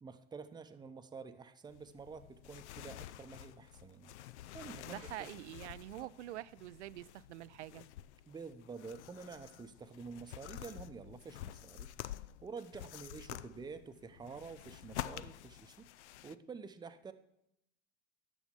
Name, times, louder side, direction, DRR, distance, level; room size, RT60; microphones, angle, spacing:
voice 1, 0.0-4.1 4.5-5.1 6.0-6.1 8.3-11.9 12.4-15.9 16.2-17.1, right 5 dB, 10° right, 9 dB, 0.7 m, -49 dB
sound 1, 1.7-16.3, left 13 dB, 70° left, 0.5 m, -49 dB
voice 2, 4.9-7.9, right 15 dB, 75° right, 19 dB, 0.5 m, -46 dB
11.5 x 7.1 x 5.3 m, 0.80 s
figure-of-eight pair, 80°, 36 cm